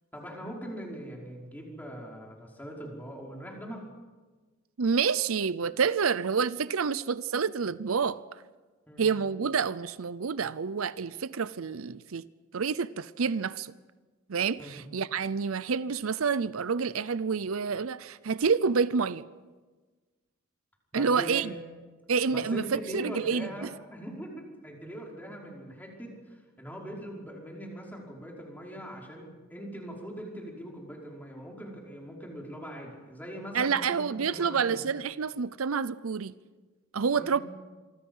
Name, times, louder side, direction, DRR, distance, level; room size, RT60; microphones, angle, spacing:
voice 1, 0.1-3.8 8.9-9.1 14.6-14.8 20.9-21.6 22.3-34.8 37.1-37.4, equal, 10° left, 5.4 m, -41 dB
voice 2, 4.8-8.2 9.0-12.2 12.5-13.7 14.3-19.2 20.9-21.5 22.1-23.7 33.5-36.3 36.9-37.4, right 5 dB, 80° right, 0.6 m, -28 dB
26.5 x 24.5 x 5.6 m
head